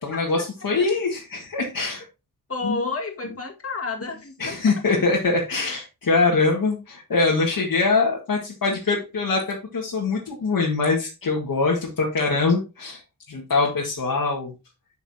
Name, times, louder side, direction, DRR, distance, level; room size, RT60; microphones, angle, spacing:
voice 1, 0.0-2.1 2.6-2.8 4.4-13.0 13.3-14.5, left 3 dB, 75° left, -2 dB, 1.8 m, -23 dB
voice 2, 2.5-5.0, left 3 dB, 40° left, 1 dB, 1.9 m, -31 dB
8.8 x 5.8 x 2.8 m, 0.28 s
wide cardioid pair, 90°, 35 cm